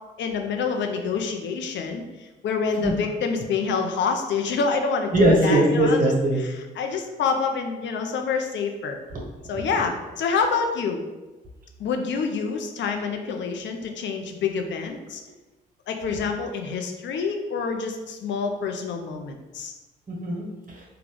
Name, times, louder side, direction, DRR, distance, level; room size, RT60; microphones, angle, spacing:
voice 1, 0.2-6.0 6.4-9.0 9.5-11.0 11.8-15.2 15.9-19.7, left 5 dB, 65° left, 4 dB, 0.5 m, -27 dB
voice 2, 5.1-6.4 9.5-9.7 20.1-20.8, right 1 dB, 45° right, -2 dB, 1.2 m, -21 dB
3.7 x 2.2 x 3.4 m, 1.1 s
supercardioid pair, 50°, 20 cm